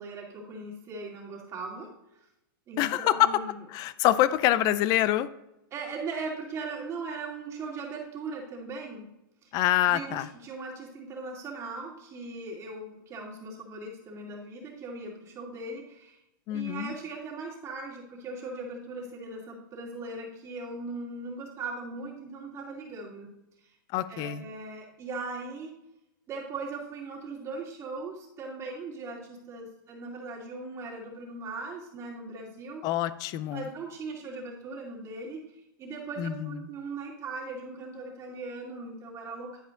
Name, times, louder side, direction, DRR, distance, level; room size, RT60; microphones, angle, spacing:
voice 1, 0.0-1.9 2.7-3.6 5.7-9.1 9.4-9.5 9.9-16.2 16.5-23.3 23.6-23.7 24.1-25.8 26.3-32.9 33.5-39.6, right 3 dB, 25° right, -2 dB, 2.4 m, -39 dB
voice 2, 2.8-3.3 3.7-5.3 9.5-10.3 16.5-16.9 23.9-24.4 32.8-33.6 36.2-36.6, left 13 dB, 30° left, 15 dB, 0.5 m, -25 dB
10.5 x 4.9 x 3.8 m, 0.87 s
hypercardioid pair, 145°, 12 cm